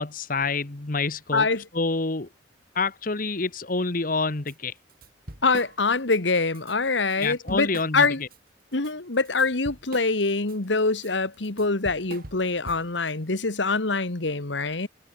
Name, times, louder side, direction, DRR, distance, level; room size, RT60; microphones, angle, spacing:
voice 1, 0.0-1.5 1.7-2.3 2.7-4.7 7.2-8.1, left 3 dB, 45° left, 1.2 m, -27 dB
voice 2, 1.3-1.7 5.4-8.2 8.7-14.9, left 3 dB, 70° left, 1.7 m, -24 dB
Drum kit / Drum, 4.5-4.6 4.9-6.2 6.5-6.7 7.1-8.4 8.7-13.1, right 2 dB, 50° right, 2.8 m, -43 dB
head